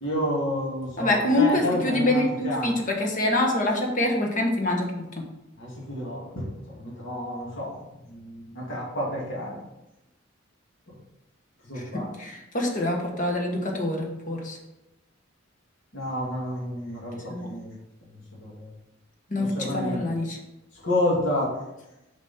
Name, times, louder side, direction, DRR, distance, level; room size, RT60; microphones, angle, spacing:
voice 1, 0.0-2.8 5.6-7.7 8.1-9.6 10.9-11.0 11.6-12.1 15.9-17.7 18.4-18.7 19.4-20.1 20.7-21.5, left 1 dB, 65° left, -5 dB, 2.4 m, -30 dB
voice 2, 1.0-5.0 12.2-14.6 17.3-17.5 19.3-20.4, left 1 dB, 40° left, 1 dB, 1.3 m, -25 dB
7.0 x 5.2 x 4.3 m, 0.96 s
head